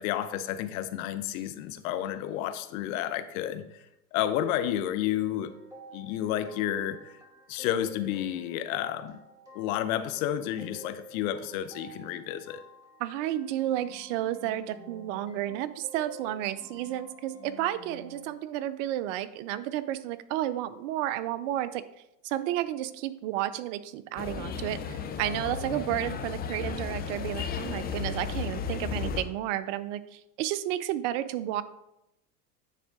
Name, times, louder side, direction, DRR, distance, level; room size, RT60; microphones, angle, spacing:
voice 1, 0.0-3.8 4.1-5.5 5.9-7.2 7.5-9.2 9.5-12.6, left 11 dB, 60° left, 11 dB, 0.7 m, -31 dB
sound 1, 5.2-18.2, equal, 5° right, 2.4 m, -50 dB
voice 2, 13.0-21.8 22.2-31.6, right 13 dB, 50° right, 15 dB, 0.5 m, -32 dB
sound 2, 24.2-29.2, left 6 dB, 20° left, 0.5 m, -34 dB
9.2 x 3.6 x 3.6 m, 0.86 s
hypercardioid pair, 100°, 49 cm